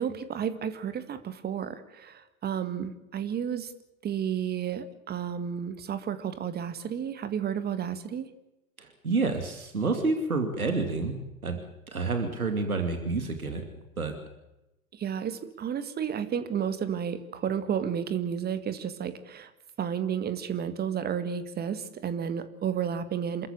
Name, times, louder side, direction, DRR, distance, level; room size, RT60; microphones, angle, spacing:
voice 1, 0.0-3.7 4.0-8.3 14.9-19.5 19.8-23.5, right 8 dB, 20° right, 12 dB, 1.8 m, -32 dB
voice 2, 8.8-11.6 11.9-13.6 14.0-14.1, right 3 dB, 80° right, 6 dB, 2.7 m, -29 dB
28.0 x 14.0 x 8.5 m, 0.95 s
figure-of-eight pair, 90°, 43 cm